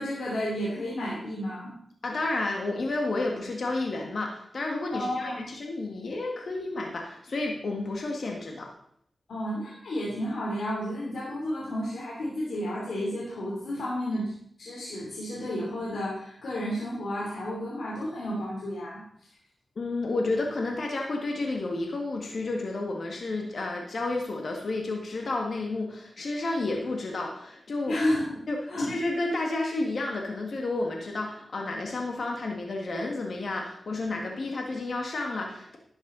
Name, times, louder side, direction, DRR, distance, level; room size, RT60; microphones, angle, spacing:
voice 1, 0.0-1.7 4.9-5.4 9.3-14.3 14.6-19.0 27.9-28.4 28.7-28.9, equal, 85° left, -6 dB, 3.3 m, -31 dB
voice 2, 2.0-8.7 19.8-28.0 28.5-35.8, left 2 dB, 70° left, 1 dB, 1.8 m, -31 dB
12.0 x 9.1 x 4.0 m, 0.66 s
cardioid pair, 55°, 0 cm